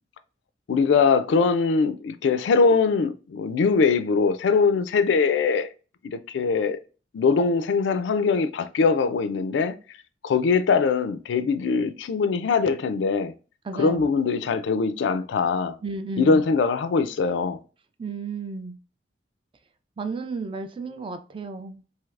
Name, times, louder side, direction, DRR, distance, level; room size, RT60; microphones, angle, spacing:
voice 1, 0.7-5.7 6.0-6.8 7.1-9.8 10.2-13.3 13.7-15.7 16.2-17.6, left 4 dB, 80° left, 0.3 m, -22 dB
voice 2, 13.6-14.0 15.8-16.4 18.0-18.8 20.0-21.8, right 4 dB, 30° right, 0.3 m, -33 dB
3.2 x 2.7 x 2.4 m
head